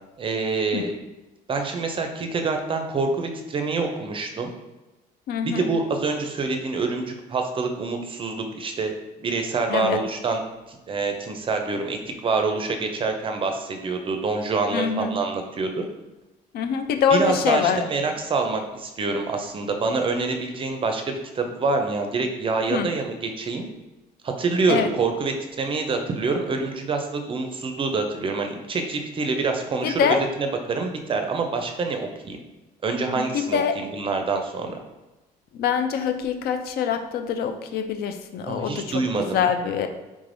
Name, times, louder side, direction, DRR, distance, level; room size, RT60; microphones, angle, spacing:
voice 1, 0.2-0.9 1.5-4.5 5.4-8.9 9.2-10.4 10.7-12.0 12.2-15.8 17.1-23.7 24.2-32.4 32.8-34.8 38.5-39.4, right 4 dB, 30° right, 5 dB, 0.4 m, -26 dB
voice 2, 5.3-5.7 9.7-10.0 14.7-15.1 16.5-17.8 22.7-22.9 24.7-24.9 29.8-30.2 33.2-33.8 35.5-39.0 39.3-39.9, left 7 dB, 65° left, 7 dB, 0.4 m, -24 dB
3.5 x 3.2 x 2.6 m, 1.1 s
cardioid pair, 110°, 17 cm